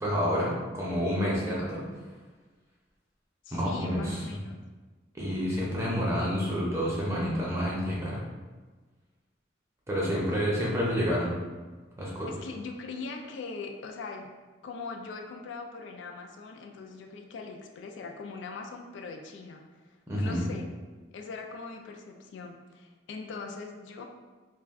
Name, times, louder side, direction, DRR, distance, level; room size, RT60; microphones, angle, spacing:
voice 1, 0.0-1.8 3.5-4.4 5.1-8.2 9.9-11.4 12.0-12.3 20.1-20.5, equal, 15° right, -6 dB, 0.6 m, -29 dB
voice 2, 3.4-4.6 9.9-10.2 12.3-14.3 14.6-20.7 21.1-24.0, left 4 dB, 80° left, 3 dB, 0.3 m, -41 dB
2.3 x 2.2 x 3.5 m, 1.3 s
head